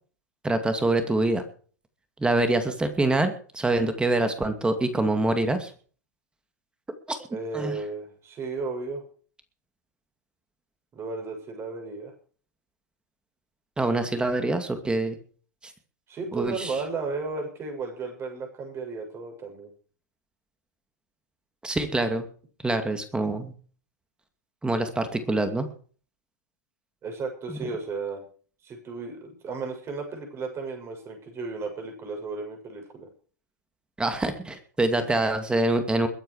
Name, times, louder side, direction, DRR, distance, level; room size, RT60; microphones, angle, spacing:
voice 1, 0.4-1.4 2.2-5.7 7.1-7.2 7.5-7.8 13.8-15.2 15.6-15.7 16.3-16.8 21.6-22.2 22.6-23.5 24.6-25.7 27.5-27.7 34.0-36.1, right 2 dB, 10° right, 8 dB, 2.4 m, -25 dB
voice 2, 7.3-9.0 10.9-12.1 16.1-19.7 27.0-28.2 28.6-33.1 35.0-35.1, right 4 dB, 30° right, 3 dB, 7.2 m, -34 dB
22.0 x 9.4 x 5.0 m, 0.42 s
hypercardioid pair, 105°, 9 cm